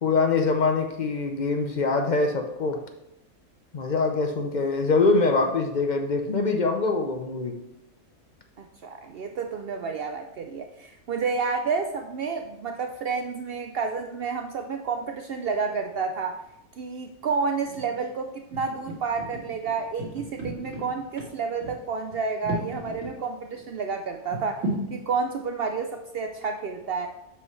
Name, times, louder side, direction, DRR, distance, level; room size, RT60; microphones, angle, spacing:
voice 1, 0.0-2.8 3.7-7.5, left 3 dB, 60° left, 4 dB, 0.4 m, -24 dB
voice 2, 8.6-16.4 16.7-27.1, right 5 dB, 80° right, 5 dB, 0.5 m, -30 dB
sound 1, 17.6-18.0 18.5-23.1 23.5-23.6 24.3-24.9, right 1 dB, 60° right, 2.3 m, -35 dB
7.6 x 5.6 x 3.1 m, 0.85 s
omnidirectional pair, 1.6 m